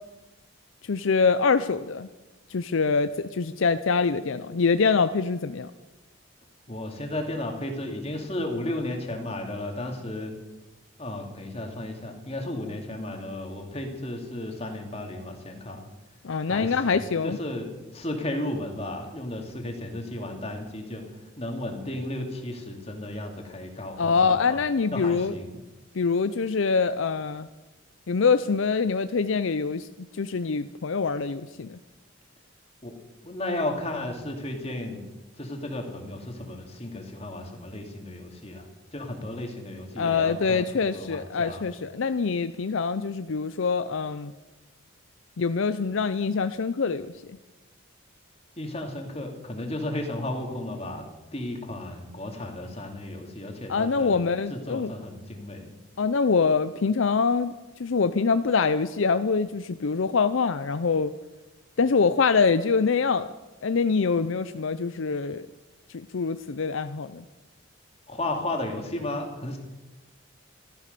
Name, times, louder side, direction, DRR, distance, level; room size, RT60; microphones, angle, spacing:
voice 1, 0.9-2.1 2.5-5.7 16.2-17.4 24.0-25.3 26.0-27.5 28.1-29.9 30.1-31.8 40.0-44.3 45.4-47.1 53.7-54.9 56.0-57.5 57.8-61.1 61.8-63.3 63.6-65.5 65.9-67.2, left 5 dB, 70° left, 12 dB, 0.5 m, -24 dB
voice 2, 6.7-10.3 11.0-15.9 16.4-17.7 17.9-21.0 21.4-24.6 24.9-25.6 32.8-32.9 33.2-35.1 35.4-38.7 38.9-41.6 48.6-51.0 51.3-54.2 54.5-55.7 68.1-69.6, left 1 dB, 30° left, 3 dB, 2.4 m, -34 dB
14.5 x 13.5 x 6.8 m, 1.1 s
head